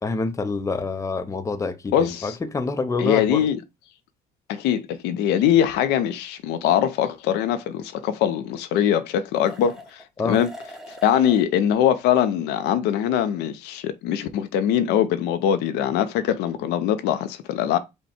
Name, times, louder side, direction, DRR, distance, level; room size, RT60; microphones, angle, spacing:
voice 1, 0.0-3.5 10.2-10.4, left 3 dB, 20° left, 0.6 m, -27 dB
voice 2, 1.9-2.3 3.0-3.6 4.5-10.5 11.0-17.8, left 10 dB, 90° left, 0.6 m, -22 dB
sound 1, 5.6-5.7 9.4-10.1 10.3-11.4, left 1 dB, 5° right, 1.0 m, -42 dB
5.6 x 2.2 x 4.2 m
cardioid pair, 110°, 17 cm